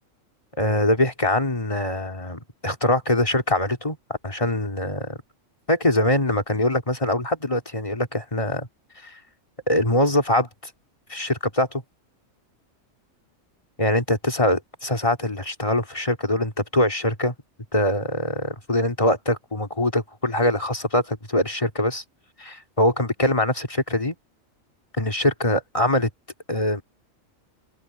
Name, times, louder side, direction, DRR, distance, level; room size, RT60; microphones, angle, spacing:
voice 1, 0.6-4.0 4.2-5.2 5.7-8.7 9.0-9.2 9.7-10.5 11.1-11.8 13.8-17.3 17.7-22.0 22.4-24.1 25.0-26.1 26.5-26.8, left 1 dB, 25° left, 2.6 m, -23 dB
open air
omnidirectional pair, 1.4 m